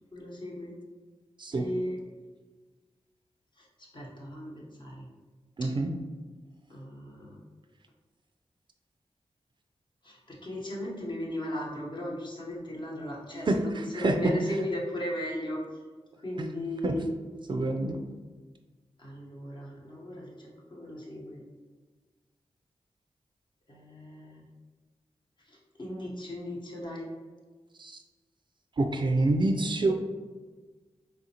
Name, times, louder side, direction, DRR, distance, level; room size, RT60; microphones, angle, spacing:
voice 1, 0.1-0.7 1.5-2.0 3.6-3.7 3.9-5.1 5.6-5.7 6.7-7.4 10.0-15.6 16.2-17.0 19.0-21.4 23.7-24.4 25.5-27.1, left 1 dB, 45° left, -3 dB, 1.0 m, -37 dB
voice 2, 5.6-5.9 13.5-14.1 16.4-16.5 16.8-17.1 17.5-18.0 27.8-28.0 28.8-29.9, right 2 dB, 45° right, 4 dB, 0.3 m, -27 dB
3.4 x 2.5 x 2.8 m, 1.4 s
cardioid pair, 50°, 11 cm